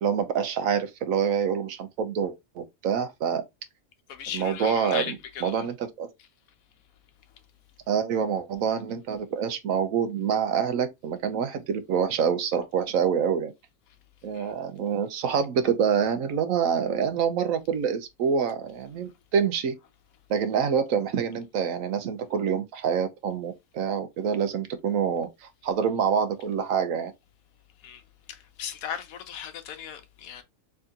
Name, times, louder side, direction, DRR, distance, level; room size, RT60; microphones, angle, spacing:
voice 1, 0.0-3.4 4.3-6.1 7.9-13.5 14.2-19.7 20.3-27.1, right 7 dB, 75° right, 1.0 m, -26 dB
voice 2, 4.1-5.6 14.3-14.5 27.8-28.0 28.3-30.4, left 8 dB, 80° left, 1.1 m, -37 dB
3.4 x 2.7 x 3.6 m
omnidirectional pair, 1.5 m